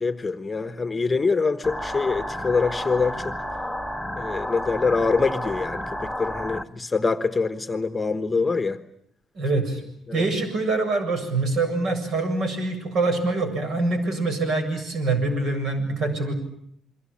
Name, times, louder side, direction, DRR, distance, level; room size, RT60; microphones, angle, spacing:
voice 1, 0.0-3.3 4.2-8.8 10.1-10.3, left 4 dB, 15° left, 10 dB, 1.3 m, -24 dB
sound 1, 1.6-6.6, equal, ahead, 1.1 m, -31 dB
voice 2, 9.4-9.8 10.1-16.3, right 3 dB, 55° right, 7 dB, 7.7 m, -25 dB
29.5 x 23.0 x 8.6 m, 0.68 s
cardioid pair, 135°, 0 cm